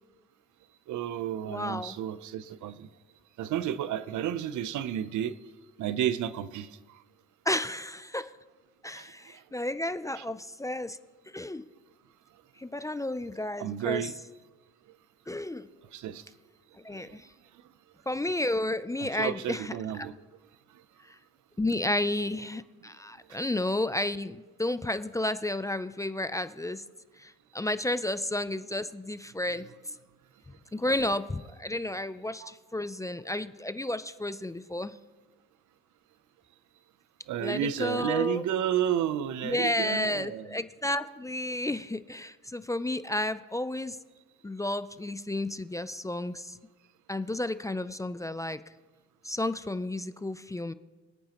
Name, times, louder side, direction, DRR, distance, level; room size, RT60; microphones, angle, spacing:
voice 1, 0.9-2.9 3.4-5.3 5.8-6.7 9.0-9.1 10.2-10.3 13.6-14.1 15.9-16.2 16.9-17.0 19.2-20.1 32.4-32.5 37.3-40.5, right 10 dB, 75° right, 0.7 m, -31 dB
voice 2, 1.5-1.9 7.5-8.3 8.8-11.0 11.3-11.6 12.6-14.1 15.3-15.7 16.8-17.3 18.1-20.1 21.6-26.8 27.2-29.6 30.7-35.0 37.4-38.4 39.4-44.0 44.4-46.6 47.1-48.6 49.2-50.7, left 1 dB, 10° left, 0.4 m, -32 dB
25.5 x 8.7 x 3.0 m
cardioid pair, 90°, 30 cm